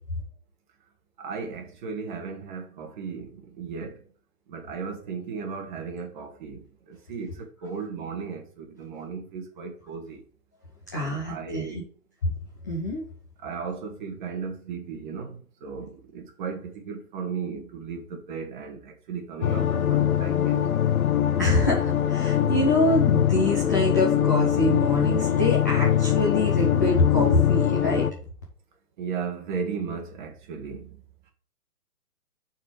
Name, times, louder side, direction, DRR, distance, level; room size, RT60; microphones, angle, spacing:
voice 1, 1.2-4.0 4.5-10.2 10.9-11.8 13.4-20.6 29.0-31.0, right 5 dB, 30° right, 1.6 m, -36 dB
voice 2, 10.9-11.8 12.6-13.0 21.4-28.1, left 1 dB, 15° left, 0.5 m, -25 dB
sound 1, 19.4-28.1, left 10 dB, 65° left, 0.8 m, -23 dB
7.1 x 4.3 x 4.7 m
hypercardioid pair, 155°, 46 cm